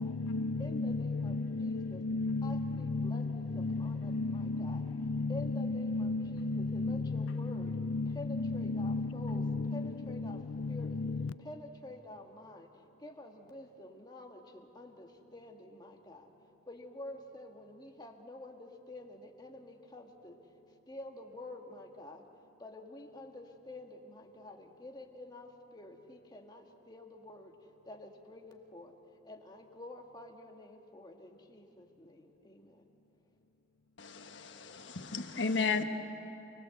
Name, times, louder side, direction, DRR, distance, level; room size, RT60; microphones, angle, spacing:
voice 1, 0.0-11.5, left 3 dB, 80° left, 0.5 m, -34 dB
voice 2, 0.6-2.0 2.4-4.8 5.3-7.7 8.1-9.4 9.7-10.4 10.7-11.0 11.4-16.3 16.7-20.4 20.9-22.3 22.6-28.9 29.2-32.9, left 2 dB, 20° left, 1.8 m, -49 dB
voice 3, 34.0-35.8, left 4 dB, 65° left, 1.5 m, -34 dB
28.5 x 21.0 x 7.9 m
head